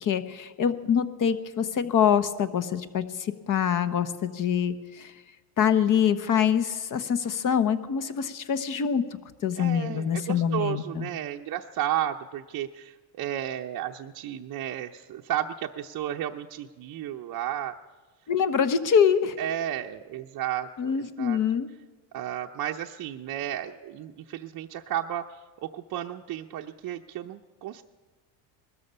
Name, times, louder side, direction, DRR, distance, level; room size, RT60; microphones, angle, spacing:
voice 1, 0.0-5.1 5.6-9.0 9.4-11.1 18.3-19.4 20.8-21.7, left 8 dB, 40° left, 11 dB, 1.1 m, -25 dB
voice 2, 9.6-17.7 19.4-21.4 22.1-25.2 25.6-27.8, right 11 dB, 45° right, 2 dB, 0.7 m, -33 dB
20.0 x 13.5 x 5.5 m, 1.3 s
supercardioid pair, 110°, 47 cm